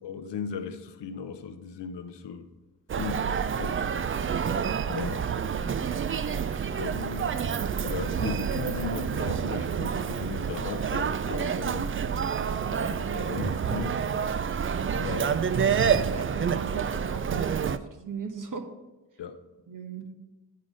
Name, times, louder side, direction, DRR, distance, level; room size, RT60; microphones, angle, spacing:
voice 1, 0.0-2.5 2.9-3.9 4.8-5.3 6.7-7.3 7.8-12.0 12.7-14.0 14.9-15.4 19.2-19.4, left 7 dB, 90° left, 8 dB, 0.7 m, -37 dB
Human voice, 2.9-17.8, right 7 dB, 30° right, 0.4 m, -28 dB
voice 2, 15.5-18.7 19.7-20.1, right 5 dB, 50° right, 5 dB, 1.2 m, -37 dB
9.5 x 3.8 x 5.0 m, 1.1 s
cardioid pair, 45°, 41 cm